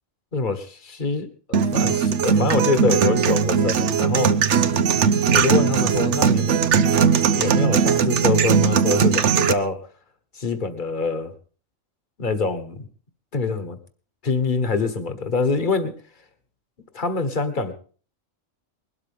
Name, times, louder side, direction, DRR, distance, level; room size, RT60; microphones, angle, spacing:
voice 1, 0.3-4.3 5.3-7.0 7.4-9.8 10.3-11.3 12.2-12.9 13.3-13.8 14.2-15.9 16.9-17.7, left 4 dB, 40° left, 9 dB, 1.6 m, -25 dB
sound 1, 1.5-9.5, right 7 dB, 65° right, 1.1 m, -19 dB
21.0 x 12.5 x 3.6 m, 0.41 s
omnidirectional pair, 1.3 m